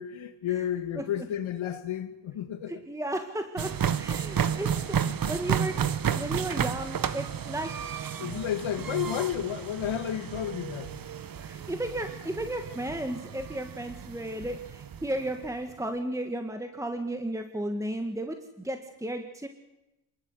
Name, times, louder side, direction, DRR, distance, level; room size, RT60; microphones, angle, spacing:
voice 1, 0.0-2.8 5.1-5.3 8.2-11.0, left 10 dB, 75° left, 2.2 m, -32 dB
voice 2, 2.7-5.7 6.1-7.7 11.4-18.4 18.6-19.5, right 1 dB, 5° right, 1.8 m, -34 dB
sound 1, 3.6-15.6, right 8 dB, 45° right, 1.1 m, -32 dB
27.5 x 12.5 x 8.0 m
cardioid pair, 95°, 48 cm